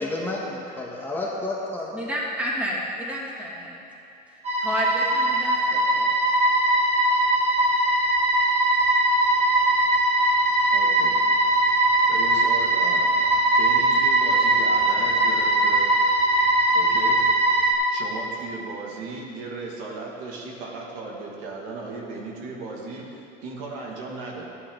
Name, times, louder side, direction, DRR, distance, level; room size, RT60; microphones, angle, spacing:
voice 1, 0.0-2.0, left 2 dB, 10° left, -4 dB, 1.5 m, -30 dB
voice 2, 1.9-3.8 4.6-6.1, equal, 5° right, -5 dB, 2.6 m, -30 dB
sound 1, 4.4-17.7, right 1 dB, 30° right, 2.4 m, -20 dB
voice 3, 10.7-11.1 11.7-13.1 13.6-15.9 16.7-17.2 17.9-24.5, right 3 dB, 70° right, -1 dB, 2.3 m, -36 dB
13.5 x 10.5 x 4.0 m, 2.7 s
supercardioid pair, 120°, 21 cm